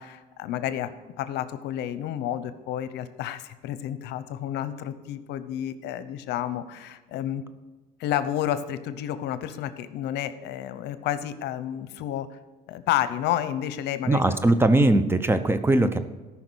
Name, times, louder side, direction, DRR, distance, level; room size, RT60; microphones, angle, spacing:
voice 1, 0.0-7.4 8.0-12.4 12.7-14.2, left 11 dB, 85° left, 12 dB, 0.7 m, -30 dB
voice 2, 14.0-16.0, right 2 dB, 15° right, 11 dB, 0.7 m, -20 dB
14.0 x 5.8 x 6.2 m, 1.2 s
cardioid pair, 110°, 17 cm